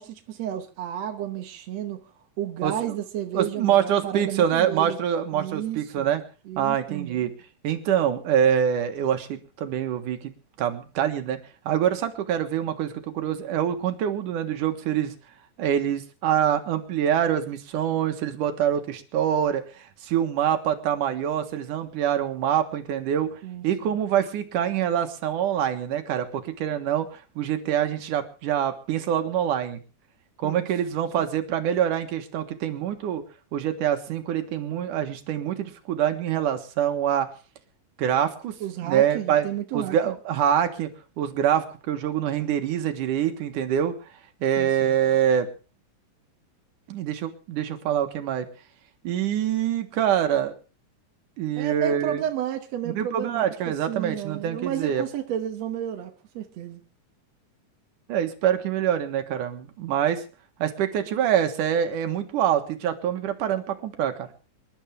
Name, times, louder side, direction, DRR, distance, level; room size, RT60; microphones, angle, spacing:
voice 1, 0.0-2.0 2.4-5.0 5.3-6.1 6.5-7.3 23.4-24.0 30.4-30.7 38.6-40.2 44.6-45.0 51.6-56.8, right 11 dB, 65° right, 2.1 m, -32 dB
voice 2, 2.6-3.0 3.3-6.2 6.6-7.3 7.6-11.4 11.7-15.1 15.6-23.3 23.6-29.8 30.4-33.2 33.5-37.3 38.0-38.5 38.8-39.5 39.7-40.9 41.2-44.0 44.4-45.5 46.9-48.5 49.0-50.5 51.4-52.2 52.9-55.0 58.1-60.2 60.6-64.3, right 9 dB, 85° right, 2.9 m, -25 dB
26.5 x 11.5 x 3.5 m
omnidirectional pair, 3.6 m